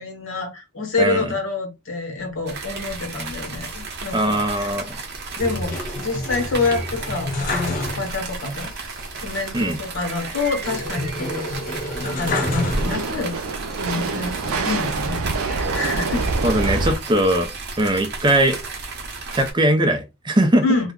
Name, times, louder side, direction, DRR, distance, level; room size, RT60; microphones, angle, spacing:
voice 1, 0.0-4.7 5.4-8.7 9.2-11.5 12.0-13.3 13.8-16.3 20.6-20.9, left 3 dB, 75° left, 1.1 m, -27 dB
sound 1, 2.5-19.5, right 4 dB, 50° right, 0.8 m, -34 dB
sound 2, 2.7-2.8 2.9-3.0 3.3-3.5 4.0-4.1 7.1-7.2 7.7-17.0, right 3 dB, 90° right, 0.5 m, -28 dB
voice 2, 4.1-5.0 9.5-9.8 16.4-17.5 17.8-18.6 19.3-20.6, right 1 dB, 20° right, 0.4 m, -20 dB
sound 3, 5.4-8.4 8.7-8.8 10.6-13.4 13.9-14.7, left 1 dB, 40° left, 0.6 m, -28 dB
2.3 x 2.1 x 3.5 m
head